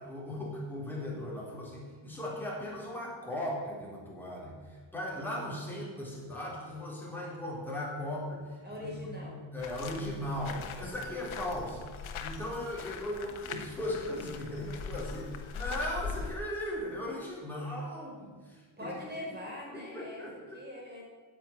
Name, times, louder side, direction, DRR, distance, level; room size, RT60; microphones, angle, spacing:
voice 1, 0.0-11.9 12.2-19.0 19.7-20.4, left 1 dB, 5° left, -5 dB, 3.7 m, -38 dB
voice 2, 8.6-9.4 18.8-20.2 20.5-21.0, left 1 dB, 20° right, -4 dB, 4.5 m, -42 dB
sound 1, 9.6-16.3, left 5 dB, 75° left, 1.2 m, -41 dB
10.0 x 7.6 x 9.3 m, 1.5 s
wide cardioid pair, 170°, 49 cm